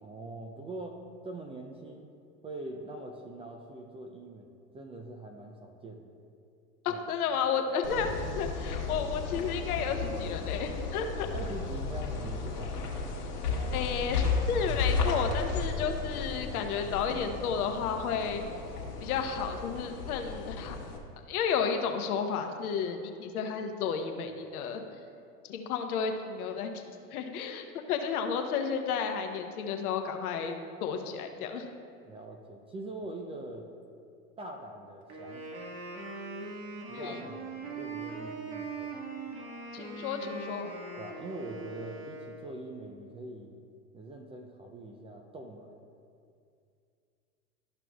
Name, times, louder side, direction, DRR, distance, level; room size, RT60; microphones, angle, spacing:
voice 1, 0.0-2.1 2.4-6.1 6.9-7.0 11.3-12.7 13.5-13.8 32.0-33.7 34.4-35.5 36.9-38.9 41.0-43.5 43.9-45.7, right 2 dB, 15° right, 2 dB, 0.3 m, -43 dB
voice 2, 6.8-11.3 13.7-18.4 19.0-20.8 21.3-24.8 25.4-26.7 27.1-30.6 30.8-31.6 36.9-37.2 39.7-40.7, left 6 dB, 70° left, 5 dB, 0.9 m, -32 dB
sound 1, 7.8-21.0, left 4 dB, 85° left, 1.4 m, -34 dB
Wind instrument woodwind instrument, 35.1-42.7, right 3 dB, 55° right, 1.6 m, -41 dB
12.5 x 5.9 x 2.3 m, 2.4 s
hypercardioid pair, 95°, 45 cm